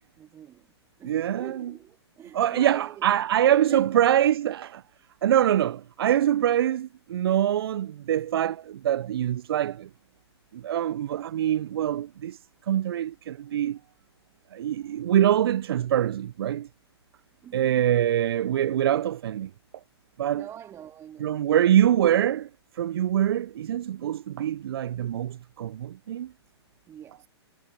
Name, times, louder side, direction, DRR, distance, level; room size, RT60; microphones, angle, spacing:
voice 1, 0.2-0.7 1.0-3.1 3.4-4.0 17.4-18.0 20.3-21.7 26.9-27.3, right 10 dB, 20° right, 2.3 m, -44 dB
voice 2, 1.0-1.7 2.3-4.8 5.2-9.9 10.5-12.4 12.7-13.8 14.5-16.7 17.5-19.5 20.2-20.5 21.2-22.5 22.8-26.3, right 11 dB, 60° right, 0.6 m, -24 dB
figure-of-eight pair, 120°, 14 cm